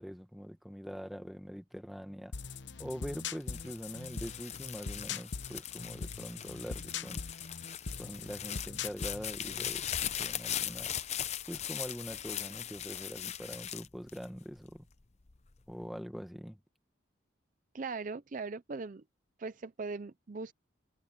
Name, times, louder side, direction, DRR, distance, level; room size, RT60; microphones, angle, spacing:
voice 1, 0.0-2.3 2.8-7.2 8.0-10.9 11.5-14.9 15.7-16.6, equal, ahead, 1.5 m, -43 dB
sound 1, 2.3-9.7, left 5 dB, 60° left, 0.9 m, -41 dB
sound 2, 3.4-14.8 15.3-15.9, left 10 dB, 35° left, 0.6 m, -39 dB
voice 2, 17.7-19.0 19.4-20.5, right 4 dB, 40° right, 0.5 m, -39 dB
head